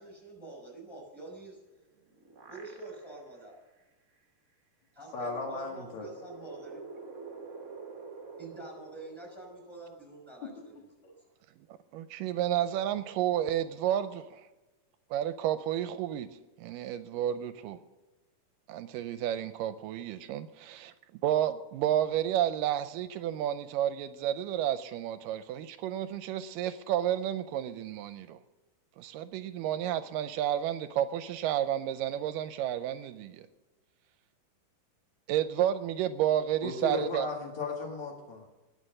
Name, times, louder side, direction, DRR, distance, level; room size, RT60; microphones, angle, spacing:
voice 1, 0.0-1.6 2.4-3.5 4.9-6.8 8.4-11.1, right 2 dB, 5° right, 5.3 m, -46 dB
sound 1, 1.7-3.3 3.8-3.9 5.2-10.0, right 4 dB, 40° right, 1.1 m, -48 dB
voice 2, 5.1-6.1 10.6-10.7 36.6-38.5, left 3 dB, 60° left, 3.0 m, -36 dB
voice 3, 11.9-14.5 15.1-16.3 16.6-17.8 18.7-20.9 21.2-28.4 29.0-33.5 35.3-37.3, right 11 dB, 80° right, 2.1 m, -31 dB
20.0 x 6.7 x 6.5 m
omnidirectional pair, 3.9 m